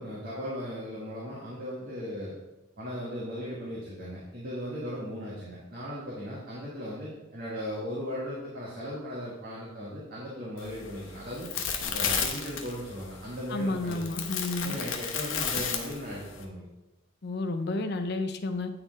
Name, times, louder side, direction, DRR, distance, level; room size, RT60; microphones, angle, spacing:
voice 1, 0.0-2.3 2.8-11.5 11.8-14.2 14.6-16.7, equal, 50° right, -7 dB, 1.6 m, -37 dB
sound 1, 10.6-16.4, left 7 dB, 80° left, 0.9 m, -33 dB
voice 2, 13.5-14.7 17.2-18.7, left 2 dB, 60° left, 8 dB, 0.6 m, -31 dB
8.7 x 4.2 x 4.0 m, 0.99 s
head